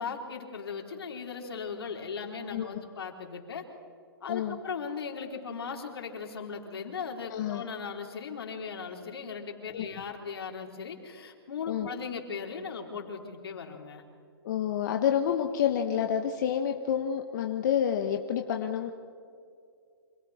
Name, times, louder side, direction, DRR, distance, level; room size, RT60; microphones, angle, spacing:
voice 1, 0.0-3.6 4.2-14.0, left 5 dB, 75° left, 2 dB, 4.0 m, -38 dB
voice 2, 7.3-7.6 9.7-10.0 11.7-11.9 14.4-18.9, left 9 dB, 50° left, 5 dB, 1.3 m, -28 dB
28.5 x 26.5 x 4.4 m, 2.3 s
hypercardioid pair, 155°, 13 cm